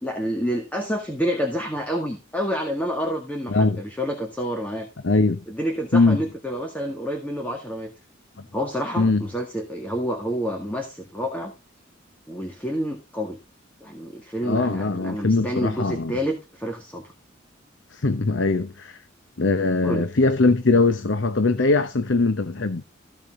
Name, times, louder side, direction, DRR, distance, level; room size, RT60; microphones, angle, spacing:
voice 1, 0.0-4.9 5.5-7.9 8.5-11.5 12.3-13.4 13.8-17.1 19.8-20.1, equal, 10° left, 1.8 m, -28 dB
voice 2, 3.5-3.8 5.0-5.4 5.9-6.2 9.0-9.2 14.4-16.1 17.9-19.0 19.4-22.8, left 3 dB, 65° left, 0.9 m, -21 dB
14.5 x 7.1 x 3.8 m
head